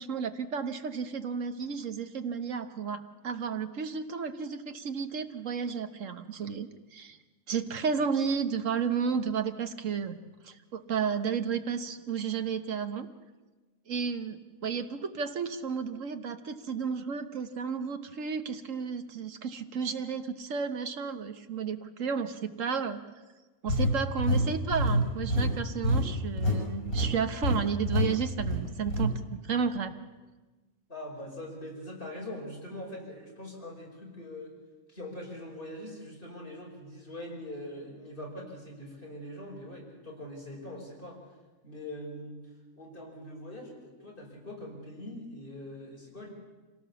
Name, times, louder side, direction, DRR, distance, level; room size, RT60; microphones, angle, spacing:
voice 1, 0.0-7.2 7.5-10.2 10.4-13.1 13.9-23.0 23.6-29.9, right 6 dB, 60° right, 9 dB, 1.5 m, -32 dB
sound 1, 23.7-26.6 26.9-27.1 27.4-27.6 27.9-28.1 28.4-29.1, equal, 70° left, 5.7 m, -26 dB
voice 2, 30.9-34.5 34.9-41.2 41.6-42.4 42.8-46.3, left 1 dB, 35° left, -2 dB, 5.4 m, -42 dB
26.0 x 18.0 x 7.1 m, 1.2 s
omnidirectional pair, 1.5 m